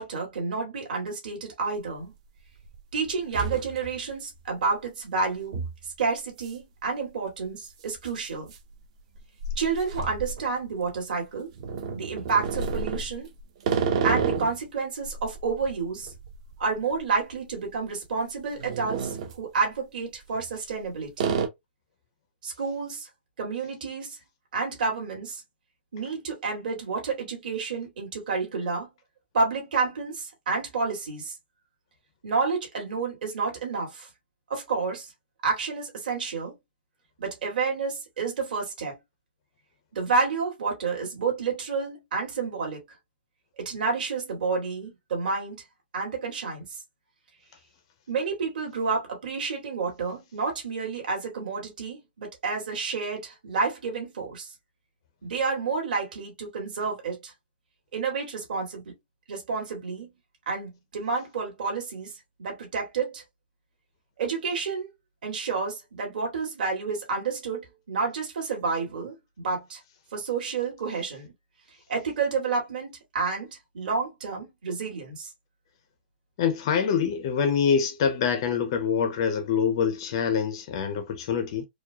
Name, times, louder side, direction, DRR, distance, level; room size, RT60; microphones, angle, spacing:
voice 1, 0.0-2.1 2.9-5.6 6.0-8.5 9.6-11.5 11.9-13.3 14.0-16.1 16.6-21.4 22.4-23.1 23.4-24.2 24.5-25.4 25.9-28.9 29.3-31.4 32.2-34.1 34.5-35.1 35.4-36.5 37.2-39.0 39.9-42.8 43.6-45.6 45.9-46.8 48.1-54.5 55.2-57.3 57.9-58.9 59.3-60.1 60.5-62.1 62.4-63.2 64.2-64.9 65.2-69.8 70.1-71.3 71.9-75.3, right 4 dB, 50° right, 2.0 m, -30 dB
sound 1, 1.8-1.9 2.4-2.8 3.1-4.1 4.4-4.5 5.5-5.8 6.4-6.6 6.8-6.9 7.9-11.0 11.5-14.6 15.0-17.4 17.6-17.8 18.4-19.4 20.2-20.8 21.2-21.5, right 5 dB, 35° right, 0.6 m, -31 dB
voice 2, 76.4-81.7, left 7 dB, 25° left, 0.4 m, -25 dB
4.5 x 2.2 x 2.7 m
hypercardioid pair, 180°, 6 cm